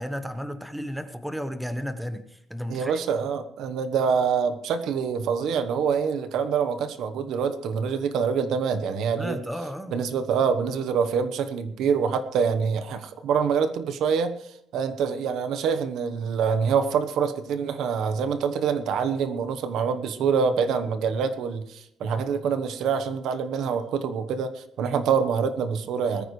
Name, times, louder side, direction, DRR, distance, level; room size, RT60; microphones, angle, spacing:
voice 1, 0.0-3.0 9.1-10.0 22.0-22.3, equal, ahead, 9 dB, 1.1 m, -33 dB
voice 2, 2.7-9.4 9.9-26.3, right 6 dB, 80° right, 10 dB, 1.1 m, -25 dB
21.0 x 14.0 x 3.2 m, 0.76 s
cardioid pair, 145°, 0 cm